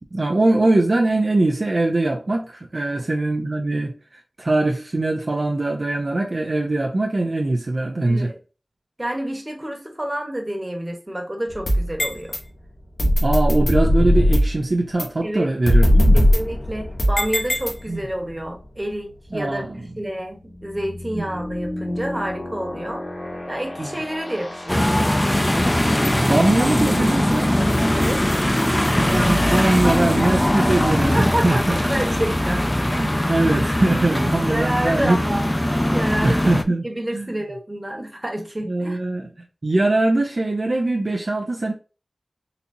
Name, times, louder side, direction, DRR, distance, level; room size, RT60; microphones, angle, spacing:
voice 1, 0.1-3.9 4.4-8.3 13.2-16.2 17.9-18.0 19.3-19.8 21.1-21.2 23.8-23.9 26.2-27.5 29.0-31.8 32.9-35.2 36.2-36.9 37.1-37.3 38.7-39.3 39.6-41.7, right 2 dB, 60° right, 0.6 m, -21 dB
voice 2, 8.0-8.4 9.0-12.4 15.2-15.5 16.1-23.0 23.5-25.2 27.9-29.4 29.7-30.2 31.1-32.8 33.3-33.4 34.1-35.5 35.9-36.5 36.8-39.0, right 1 dB, 25° right, 1.2 m, -29 dB
sound 1, 11.5-12.4 13.0-14.6 15.0-15.1 15.7-18.1, left 1 dB, 85° left, 1.0 m, -18 dB
sound 2, 19.4-32.0, left 1 dB, 70° left, 1.3 m, -36 dB
sound 3, 24.7-36.6, left 1 dB, 20° left, 0.5 m, -20 dB
3.9 x 2.9 x 2.6 m
wide cardioid pair, 45°, 0 cm